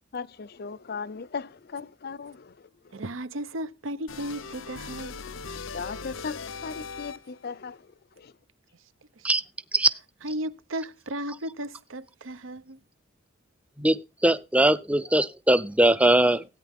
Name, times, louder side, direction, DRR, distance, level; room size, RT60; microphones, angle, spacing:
voice 1, 0.1-3.0 5.7-7.9 8.2-8.3, left 5 dB, 50° left, 0.5 m, -38 dB
voice 2, 2.9-5.2 9.2-9.3 10.2-12.8, right 1 dB, 85° right, 0.8 m, -35 dB
sound 1, 4.1-7.5, left 5 dB, 85° left, 0.8 m, -39 dB
voice 3, 13.8-16.5, right 1 dB, 5° right, 0.5 m, -21 dB
17.0 x 9.1 x 3.6 m
head